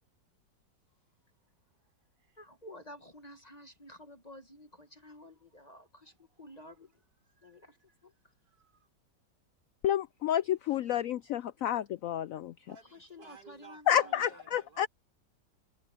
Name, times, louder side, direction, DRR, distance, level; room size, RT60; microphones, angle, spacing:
voice 1, 2.4-7.0 7.4-7.8 8.0-8.1 12.9-14.4, left 1 dB, 25° left, 1.2 m, -52 dB
voice 2, 7.4-7.8 8.3-8.9 12.7-14.9, right 5 dB, 75° right, 5.3 m, -57 dB
voice 3, 9.8-12.7 13.9-14.9, left 10 dB, 75° left, 0.7 m, -30 dB
omnidirectional pair, 1.9 m